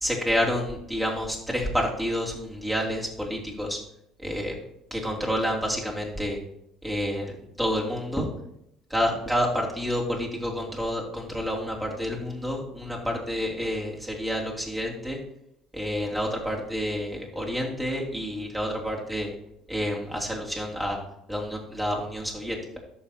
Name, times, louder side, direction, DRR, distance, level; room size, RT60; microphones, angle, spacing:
voice 1, 0.0-3.8 4.2-4.5 4.9-6.4 6.8-7.3 7.6-8.3 8.9-15.2 15.7-19.3 19.7-21.0 21.3-22.6, equal, 10° right, -2 dB, 2.9 m, -29 dB
13.5 x 5.7 x 2.9 m, 0.78 s
hypercardioid pair, 60°, 0 cm